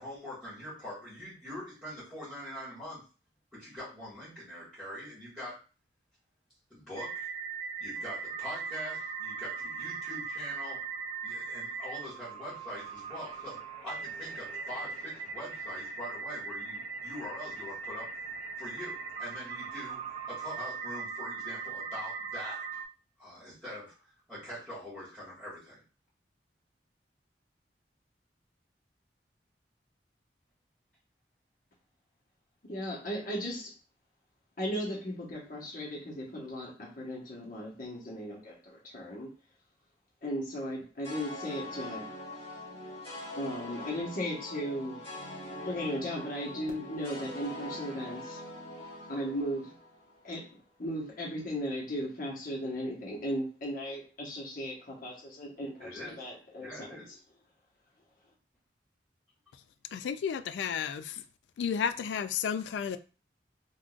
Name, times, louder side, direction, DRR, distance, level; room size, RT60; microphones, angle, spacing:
voice 1, 0.0-3.0 3.5-5.6 6.7-7.3 7.8-10.8 11.2-18.1 18.6-22.8 23.2-25.8 55.8-56.3 56.6-57.1, left 1 dB, 5° right, 1.7 m, -43 dB
sound 1, 7.0-22.9, right 5 dB, 35° right, 0.4 m, -39 dB
voice 2, 32.7-33.7 34.6-39.3 40.2-42.1 43.4-45.0 45.6-48.4 49.1-49.7 50.2-57.0, equal, 50° left, 1.2 m, -36 dB
sound 2, 41.0-50.4, left 1 dB, 35° left, 1.7 m, -43 dB
voice 3, 59.9-61.2 61.6-63.0, left 7 dB, 85° left, 0.3 m, -32 dB
3.7 x 2.4 x 2.4 m
head